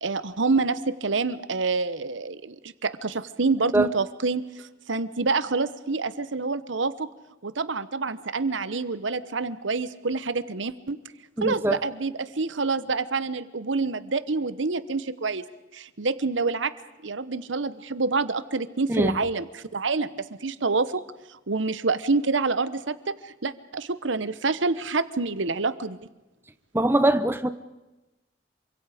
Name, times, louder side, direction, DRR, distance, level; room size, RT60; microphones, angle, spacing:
voice 1, 0.0-7.1 7.4-11.0 11.4-15.4 15.7-16.7 17.0-21.0 21.3-26.0, right 4 dB, 85° right, 1.1 m, -27 dB
voice 2, 11.4-11.8 18.9-19.2 26.7-27.5, right 1 dB, 10° right, 0.8 m, -22 dB
27.5 x 25.0 x 5.1 m
head